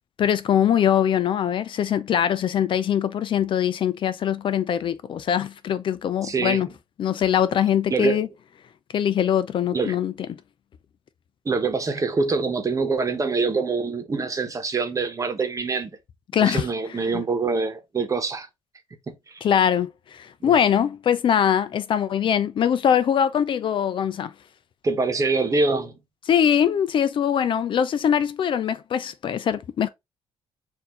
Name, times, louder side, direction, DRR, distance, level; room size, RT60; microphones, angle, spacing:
voice 1, 0.2-6.7 7.0-8.3 8.9-10.4 16.3-16.7 16.9-17.2 19.4-24.3 26.3-29.9, left 9 dB, 60° left, 0.5 m, -22 dB
voice 2, 6.2-6.6 7.9-8.2 9.7-10.0 11.4-15.9 16.4-18.5 19.1-19.5 20.4-20.5 24.8-25.9, right 4 dB, 35° right, 1.1 m, -25 dB
4.3 x 2.7 x 3.7 m
cardioid pair, 80°, 10 cm